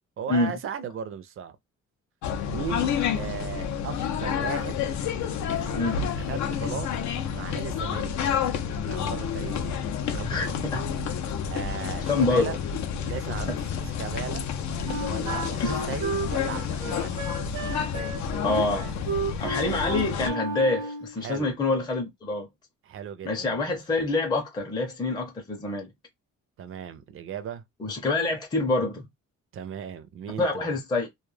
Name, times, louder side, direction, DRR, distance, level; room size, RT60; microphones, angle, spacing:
voice 1, 0.2-1.6 2.5-4.8 5.5-6.9 7.3-8.1 8.9-9.8 10.1-10.6 11.5-12.6 13.0-14.5 15.1-17.2 21.2-21.5 22.8-23.8 26.6-27.6 29.5-30.7, right 8 dB, 50° right, 0.4 m, -37 dB
sound 1, 2.2-20.3, left 7 dB, 75° left, 0.5 m, -29 dB
voice 2, 10.2-10.8 12.1-12.5 15.6-15.9 18.4-18.9 19.4-22.5 23.2-25.9 27.8-29.1 30.4-31.1, left 2 dB, 15° left, 0.5 m, -26 dB
Wind instrument woodwind instrument, 14.9-21.2, right 3 dB, 90° right, 0.8 m, -33 dB
2.2 x 2.0 x 3.1 m
cardioid pair, 150°, 29 cm